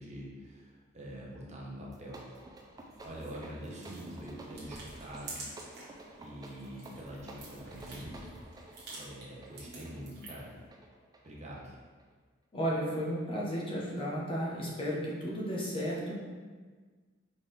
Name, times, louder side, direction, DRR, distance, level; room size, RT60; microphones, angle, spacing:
voice 1, 0.0-2.3 3.0-5.4 6.2-8.2 8.9-10.6 11.2-11.8, equal, 35° right, -4 dB, 0.8 m, -45 dB
sound 1, 1.8-12.1, right 2 dB, 20° right, 0.4 m, -52 dB
sound 2, 2.9-6.0 6.3-10.5, right 2 dB, 55° right, 1.2 m, -48 dB
voice 2, 12.5-16.2, equal, 30° left, -5 dB, 0.8 m, -33 dB
4.2 x 3.6 x 3.2 m, 1.5 s
head